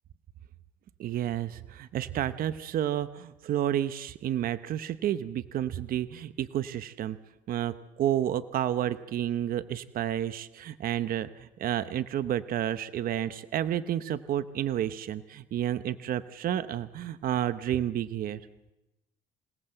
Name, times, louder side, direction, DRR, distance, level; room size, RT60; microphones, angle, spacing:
voice 1, 1.0-7.2 7.5-18.4, right 11 dB, 60° right, 13 dB, 0.8 m, -30 dB
27.0 x 17.5 x 7.8 m, 0.97 s
cardioid pair, 110°, 17 cm